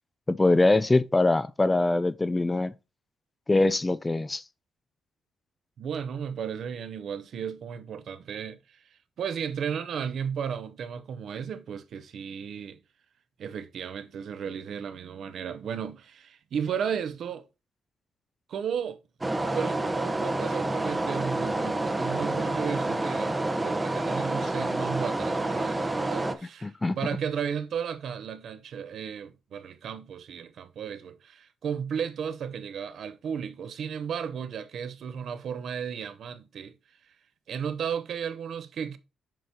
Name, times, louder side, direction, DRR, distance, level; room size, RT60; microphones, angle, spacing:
voice 1, 0.3-2.7 3.5-4.4 26.6-27.0, left 2 dB, 20° left, 0.4 m, -23 dB
voice 2, 5.8-12.8 13.4-17.4 18.5-19.0 19.5-36.7 37.5-39.0, right 7 dB, 65° right, 0.7 m, -34 dB
sound 1, 19.2-26.3, right 2 dB, 15° right, 0.8 m, -28 dB
7.6 x 5.2 x 2.8 m
cardioid pair, 90°, 0 cm